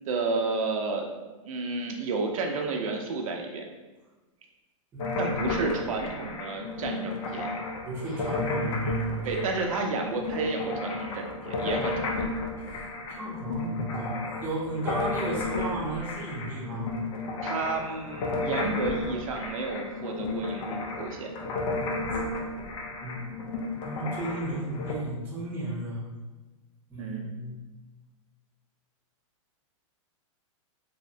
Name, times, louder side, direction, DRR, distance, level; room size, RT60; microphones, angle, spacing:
voice 1, 0.1-1.2 1.4-3.6 5.2-7.5 9.2-12.3 17.4-21.3 27.0-27.3, right 3 dB, 80° right, 2 dB, 0.5 m, -31 dB
voice 2, 4.9-5.3 7.8-9.2 12.6-12.8 13.2-16.9 23.0-23.2 23.8-26.1 26.9-27.5, right 1 dB, 10° right, -6 dB, 0.6 m, -34 dB
sound 1, 5.0-24.9, left 2 dB, 65° left, 0.5 m, -33 dB
2.7 x 2.0 x 2.6 m, 1.2 s
supercardioid pair, 155°, 17 cm